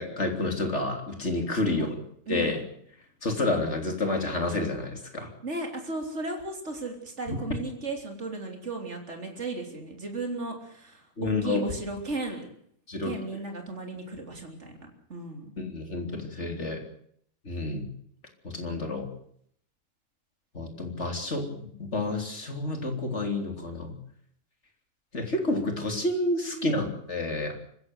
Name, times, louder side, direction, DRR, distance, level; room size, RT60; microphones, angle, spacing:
voice 1, 0.0-2.0 2.3-2.6 3.2-5.3 7.3-7.4 11.2-11.6 12.9-13.1 15.6-16.8 17.5-17.9 18.4-19.1 20.5-23.9 25.1-27.5, left 2 dB, 50° left, 4 dB, 3.8 m, -29 dB
voice 2, 2.3-2.6 5.4-12.5 13.0-15.5 26.5-26.8, right 2 dB, 50° right, 3 dB, 3.9 m, -35 dB
25.0 x 15.5 x 7.9 m, 0.67 s
omnidirectional pair, 1.5 m